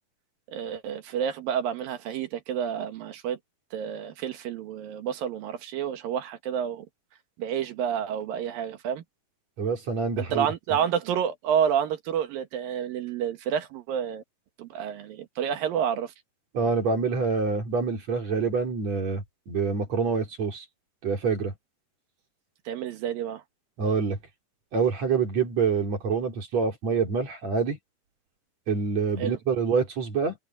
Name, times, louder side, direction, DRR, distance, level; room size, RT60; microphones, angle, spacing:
voice 1, 0.5-3.4 3.7-6.9 7.4-9.0 10.2-14.2 14.6-16.1 22.7-23.4 29.2-29.4, right 8 dB, 75° right, 3.1 m, -29 dB
voice 2, 9.6-10.5 16.5-20.6 21.0-21.5 23.8-24.2 24.7-27.8 28.7-30.4, right 5 dB, 45° right, 4.5 m, -26 dB
omnidirectional pair, 4.3 m